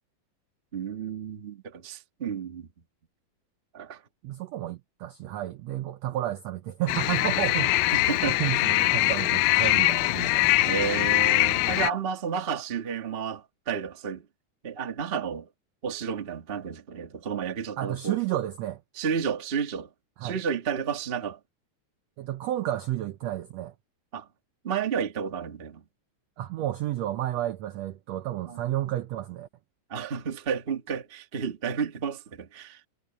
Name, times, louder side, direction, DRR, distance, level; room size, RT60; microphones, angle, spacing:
voice 1, 0.7-2.7 3.7-4.0 7.7-8.6 10.6-14.2 14.6-15.5 15.8-18.2 19.0-19.9 20.2-21.4 24.1-24.3 24.6-25.8 28.4-28.6 29.9-32.8, right 7 dB, 40° right, 0.7 m, -31 dB
voice 2, 4.2-7.9 8.3-10.7 17.8-18.8 20.2-20.4 22.2-23.7 26.4-29.5, right 13 dB, 80° right, 1.5 m, -31 dB
sound 1, 6.9-11.9, left 20 dB, 85° left, 2.2 m, -23 dB
omnidirectional pair, 3.9 m